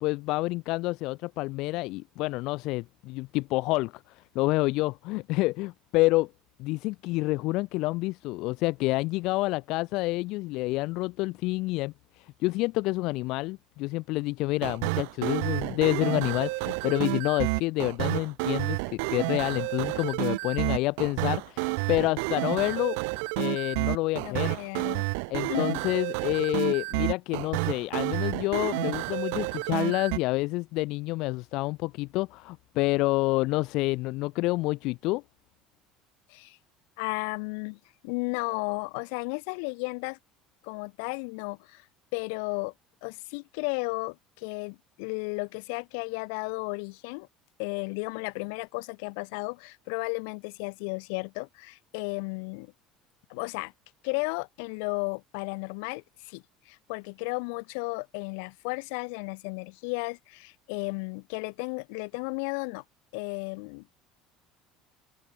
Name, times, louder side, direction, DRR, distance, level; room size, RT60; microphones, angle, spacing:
voice 1, 0.0-6.3 6.6-23.0 23.4-24.5 25.3-35.2, left 21 dB, 55° left, 1.0 m, -28 dB
sound 1, 14.6-30.2, right 34 dB, 80° right, 2.3 m, -30 dB
voice 2, 24.2-25.1 25.5-25.8 26.7-26.8 36.3-36.6 37.0-40.2 40.6-41.8 42.1-42.7 43.0-47.3 47.6-52.7 53.3-53.7 54.0-62.8 63.1-64.0, left 36 dB, 80° left, 3.0 m, -34 dB
cardioid pair, 170°, 0 cm